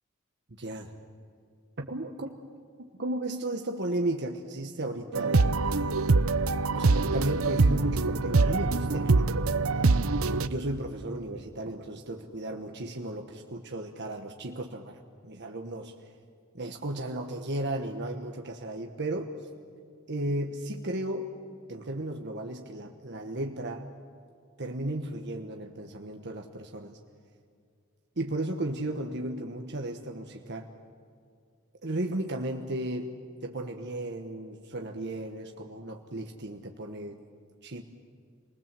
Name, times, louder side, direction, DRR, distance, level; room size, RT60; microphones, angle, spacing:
voice 1, 0.6-0.9 1.8-2.4 2.8-6.0 6.7-9.5 10.2-15.9 16.5-19.3 20.1-21.3 21.7-23.9 24.6-27.0 28.2-30.7 31.8-33.2 33.4-37.2 37.6-37.8, right 1 dB, 55° right, 3 dB, 1.3 m, -34 dB
sound 1, 5.1-10.5, right 3 dB, 80° right, 0.8 m, -24 dB
29.0 x 20.5 x 7.6 m, 2.2 s
head